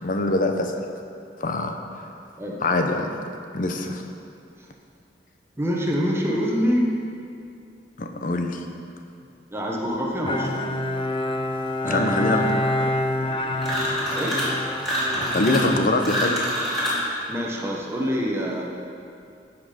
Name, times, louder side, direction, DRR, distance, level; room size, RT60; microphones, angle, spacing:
voice 1, 0.0-0.8 1.4-1.8 2.6-3.1 3.5-4.0 8.0-8.6 11.8-12.5 15.3-16.4, left 2 dB, 50° left, 5 dB, 0.9 m, -23 dB
voice 2, 5.6-6.9 9.5-10.8 11.8-12.5 14.1-14.4 17.3-18.6, equal, 15° right, -2 dB, 1.1 m, -26 dB
Bowed string instrument, 10.2-16.9, left 1 dB, 30° left, 0.6 m, -27 dB
sound 1, 13.6-14.5 14.8-17.1, equal, ahead, 2.9 m, -26 dB
14.0 x 6.0 x 5.1 m, 2.5 s
head